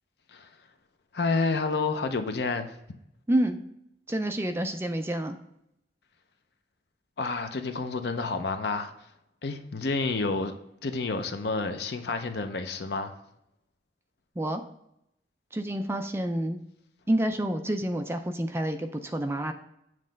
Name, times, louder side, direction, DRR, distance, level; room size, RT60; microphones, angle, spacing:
voice 1, 1.1-2.7 7.2-8.9 9.4-10.5 10.8-13.2, left 3 dB, 65° left, 0.6 m, -29 dB
voice 2, 3.3-3.6 4.1-5.4 14.4-14.6 15.5-16.6 17.1-19.5, right 1 dB, 15° right, 0.4 m, -28 dB
7.6 x 3.2 x 5.1 m
head